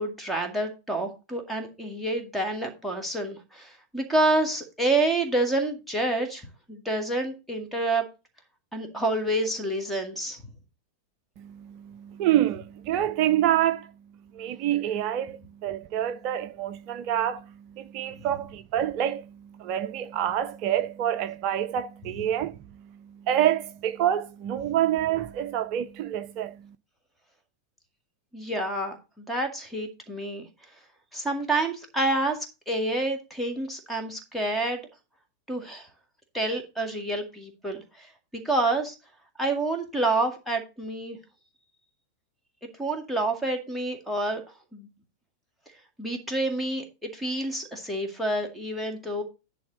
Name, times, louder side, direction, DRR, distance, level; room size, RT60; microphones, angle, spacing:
voice 1, 0.0-6.4 6.7-8.1 8.7-10.4 18.2-18.3 28.3-30.5 31.1-34.8 35.5-35.9 36.3-39.0 39.4-41.2 42.8-44.4 44.7-44.9 46.0-49.2, right 2 dB, ahead, 2.0 m, -28 dB
voice 2, 11.4-13.9 14.3-17.4 17.8-19.3 19.6-22.5 23.3-26.6, right 11 dB, 40° right, 0.5 m, -27 dB
10.5 x 3.5 x 6.2 m
figure-of-eight pair, 90°, 0 cm